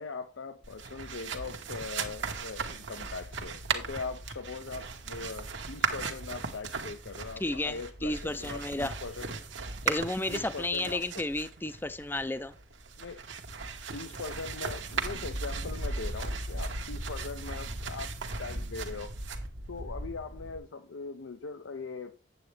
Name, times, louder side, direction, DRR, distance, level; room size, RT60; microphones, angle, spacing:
voice 1, 0.0-9.3 10.3-11.2 13.0-13.2 13.9-19.1 19.7-22.3, left 4 dB, 85° left, 0.6 m, -41 dB
sound 1, 0.6-20.6, right 4 dB, 80° right, 1.3 m, -37 dB
voice 2, 7.4-8.9 9.9-12.5, left 2 dB, 10° left, 0.4 m, -32 dB
8.7 x 7.8 x 3.3 m
head